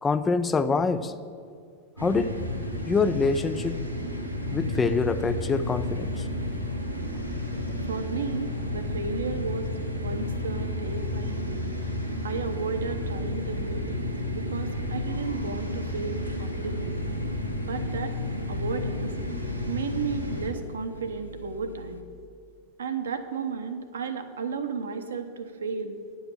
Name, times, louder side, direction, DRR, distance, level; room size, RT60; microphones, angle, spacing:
voice 1, 0.0-1.1 2.0-3.8 4.5-6.2, left 4 dB, 15° left, 11 dB, 0.4 m, -25 dB
sound 1, 2.0-20.5, left 1 dB, 90° right, 1.1 m, -32 dB
sound 2, 5.5-22.0, left 1 dB, 80° left, 0.6 m, -44 dB
voice 2, 7.8-11.6 12.2-17.0 17.7-18.2 18.5-19.1 19.7-22.0 22.8-26.0, right 5 dB, 65° right, 8 dB, 0.8 m, -33 dB
9.7 x 5.5 x 7.2 m, 2.3 s
figure-of-eight pair, 90°, 0 cm